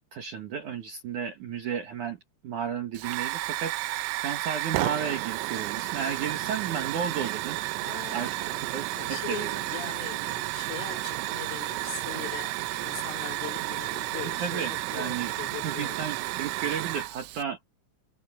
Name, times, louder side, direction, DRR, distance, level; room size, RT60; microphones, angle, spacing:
voice 1, 0.0-2.2 2.4-3.7 4.1-7.6 8.1-9.5 14.4-15.3 15.6-17.6, right 7 dB, 60° right, 2.2 m, -33 dB
Hiss / Fire, 2.9-17.4, right 18 dB, 85° right, 3.3 m, -32 dB
voice 2, 7.8-16.1, left 10 dB, 80° left, 5.9 m, -41 dB
omnidirectional pair, 5.5 m